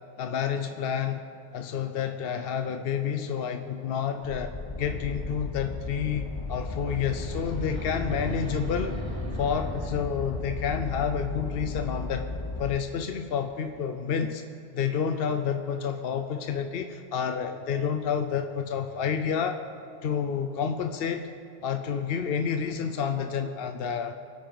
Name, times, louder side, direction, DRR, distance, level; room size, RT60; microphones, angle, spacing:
voice 1, 0.2-1.2 1.5-9.0 9.3-12.3 12.6-14.4 14.7-19.6 20.0-21.3 21.6-24.1, left 7 dB, 60° left, 7 dB, 0.8 m, -29 dB
sound 1, 4.2-12.8, left 3 dB, 25° left, 0.6 m, -35 dB
sound 2, 6.5-10.4, equal, 25° right, 2.0 m, -38 dB
24.5 x 9.0 x 4.0 m, 2.5 s
omnidirectional pair, 1.2 m